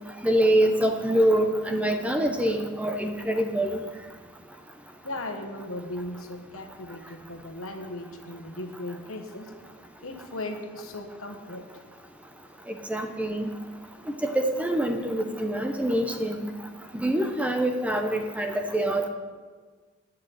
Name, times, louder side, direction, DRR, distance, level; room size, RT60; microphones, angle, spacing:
voice 1, 0.2-3.8 12.9-13.5 14.2-16.5 16.9-19.1, right 1 dB, 5° right, 5 dB, 0.6 m, -25 dB
voice 2, 5.0-9.5 10.0-11.7, left 1 dB, 65° left, 5 dB, 1.3 m, -37 dB
10.5 x 6.4 x 9.0 m, 1.5 s
head